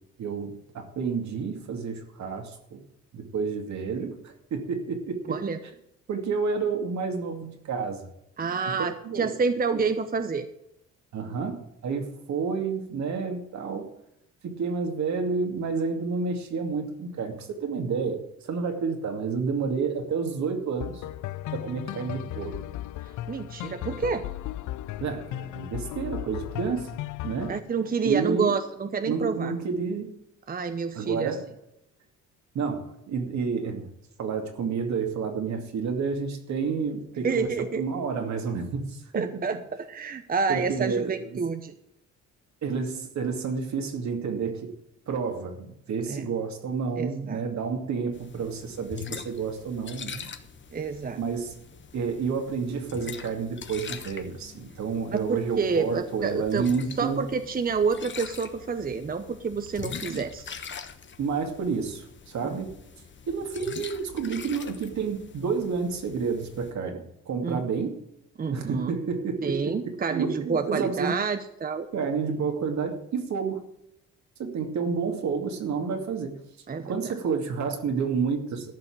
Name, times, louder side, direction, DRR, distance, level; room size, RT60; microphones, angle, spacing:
voice 1, 0.2-2.8 3.1-5.4 6.1-8.1 9.0-9.3 11.1-13.9 14.4-21.0 21.5-22.6 25.0-27.6 28.0-28.6 29.0-30.1 30.9-31.5 32.5-33.9 34.2-37.5 37.7-39.4 40.5-41.4 42.6-44.7 45.1-50.3 51.1-51.5 51.9-57.2 60.1-60.2 61.2-62.7 63.3-68.0 68.5-69.7 70.1-71.2 71.9-73.6 74.4-76.4 76.8-78.7, right 5 dB, 65° right, 4 dB, 2.5 m, -30 dB
voice 2, 5.3-5.6 8.4-10.5 23.3-24.3 27.5-29.5 30.5-31.3 37.2-37.8 39.1-39.6 39.9-41.7 46.1-46.2 47.0-47.4 50.7-51.2 55.1-56.7 57.0-60.5 62.4-62.6 67.4-67.6 68.4-69.0 69.4-71.9 76.7-76.9, right 5 dB, 30° right, 9 dB, 0.8 m, -28 dB
sound 1, 20.8-27.6, left 14 dB, 80° left, 0.5 m, -36 dB
sound 2, 48.1-66.7, left 6 dB, 40° left, 1.2 m, -43 dB
13.5 x 5.8 x 8.7 m, 0.80 s
cardioid pair, 90°, 30 cm